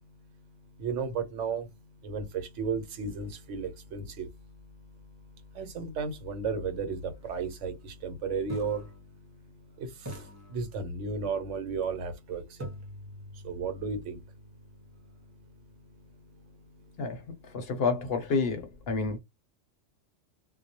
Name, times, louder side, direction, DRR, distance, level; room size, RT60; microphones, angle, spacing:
voice 1, 0.1-12.8 13.3-14.6 14.9-17.7, right 5 dB, 80° right, 1.0 m, -36 dB
sound 1, 7.4-7.5 8.5-9.7 10.0-11.3 12.6-16.5, equal, 15° right, 0.7 m, -47 dB
voice 2, 17.5-19.2, left 4 dB, 60° left, 0.8 m, -29 dB
2.2 x 2.0 x 2.7 m
omnidirectional pair, 1.2 m